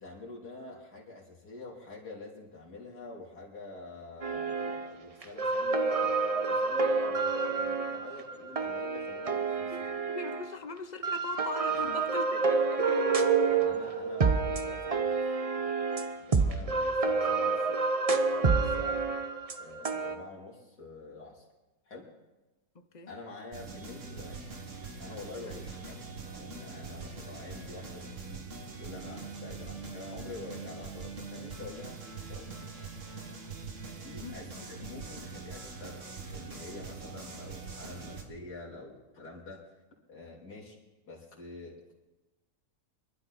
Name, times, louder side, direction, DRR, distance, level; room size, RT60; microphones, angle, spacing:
voice 1, 0.0-9.7 11.7-11.9 13.4-15.1 16.2-17.8 18.2-19.1 19.6-21.5 21.9-22.1 23.1-24.4 25.0-28.5 28.8-32.8 33.9-39.6 40.1-40.8 41.1-41.7, left 3 dB, 80° left, 3.8 m, -47 dB
sound 1, 4.2-4.9 5.2-10.5 11.0-20.2, right 4 dB, 30° right, 0.7 m, -28 dB
voice 2, 9.7-13.0 16.4-16.6 22.7-23.1 25.5-25.6 34.2-34.4 34.8-35.0, left 4 dB, 40° left, 0.7 m, -41 dB
sound 2, 23.5-38.2, right 4 dB, 50° right, 2.0 m, -43 dB
23.5 x 12.5 x 4.1 m
omnidirectional pair, 1.7 m